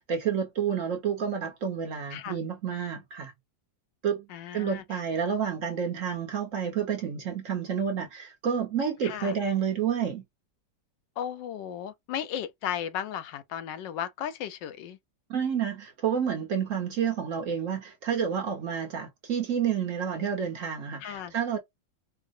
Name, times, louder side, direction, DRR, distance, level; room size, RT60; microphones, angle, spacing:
voice 1, 0.0-3.3 4.0-4.3 4.5-10.2 15.3-21.6, right 7 dB, 55° right, 1.0 m, -29 dB
voice 2, 4.3-5.0 9.0-9.4 11.2-15.0 21.0-21.3, left 10 dB, 80° left, 1.3 m, -35 dB
4.6 x 2.0 x 2.5 m
omnidirectional pair, 2.0 m